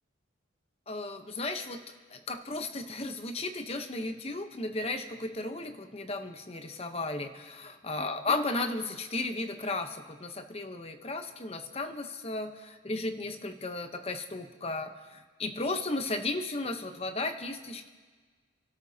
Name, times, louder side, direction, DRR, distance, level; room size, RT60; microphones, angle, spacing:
voice 1, 0.9-1.8 2.1-17.9, left 2 dB, 30° left, 7 dB, 0.9 m, -35 dB
29.0 x 13.0 x 2.8 m, 1.4 s
head